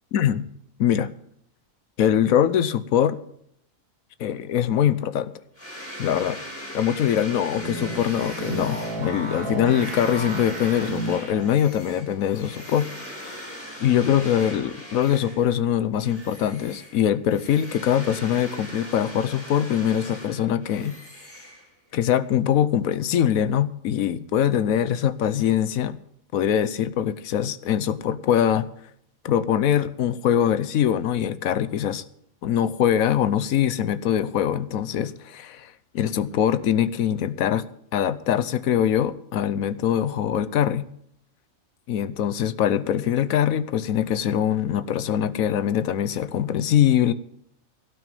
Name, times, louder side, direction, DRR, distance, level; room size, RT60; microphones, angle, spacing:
voice 1, 0.1-0.4 0.8-1.1 2.0-3.2 4.2-5.3 6.0-6.4 6.7-20.9 21.9-26.0 26.3-28.7 29.2-32.0 32.4-37.7 37.9-40.9 41.9-47.1, left 9 dB, 80° left, 1.2 m, -23 dB
sound 1, 5.6-15.6 16.0-22.0, equal, 10° left, 3.0 m, -40 dB
sound 2, 7.2-11.7, right 2 dB, 90° right, 2.9 m, -33 dB
16.5 x 6.1 x 9.1 m
omnidirectional pair, 1.4 m